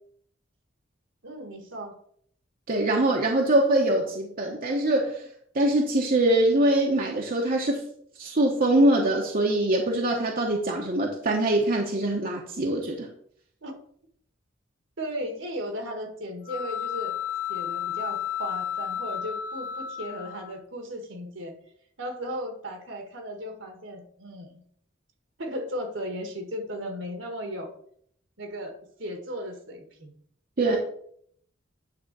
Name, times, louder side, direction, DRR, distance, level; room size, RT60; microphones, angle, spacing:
voice 1, 1.2-1.9 13.6-13.7 15.0-17.1 17.5-21.6 22.0-24.6 25.4-27.7 28.4-30.1, equal, 70° right, 5 dB, 1.8 m, -36 dB
voice 2, 2.7-5.2 5.5-7.9 8.2-13.1 30.6-30.8, right 1 dB, 45° right, 0 dB, 1.1 m, -23 dB
sound 1, 16.5-20.5, left 9 dB, 80° left, 1.8 m, -32 dB
9.6 x 3.8 x 6.8 m, 0.65 s
head